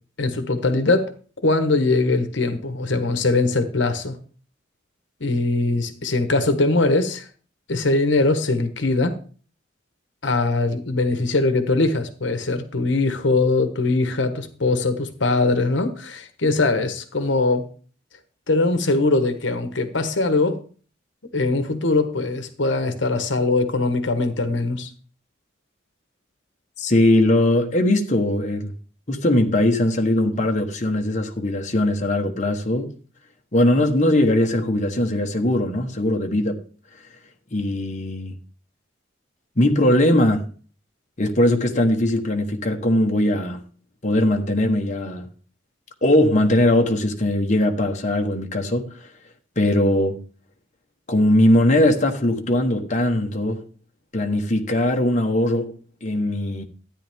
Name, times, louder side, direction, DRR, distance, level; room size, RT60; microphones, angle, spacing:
voice 1, 0.2-1.1 1.4-4.2 5.2-7.3 7.7-9.2 10.2-17.7 18.5-20.6 21.3-24.9, left 3 dB, 70° left, 1.1 m, -21 dB
voice 2, 26.8-28.7 29.1-32.9 33.5-36.6 37.5-38.3 39.6-40.4 41.2-43.6 44.0-45.3 46.0-49.1 49.6-50.2 51.1-53.7 54.1-56.6, left 1 dB, 40° left, 1.2 m, -20 dB
13.5 x 9.4 x 3.6 m
head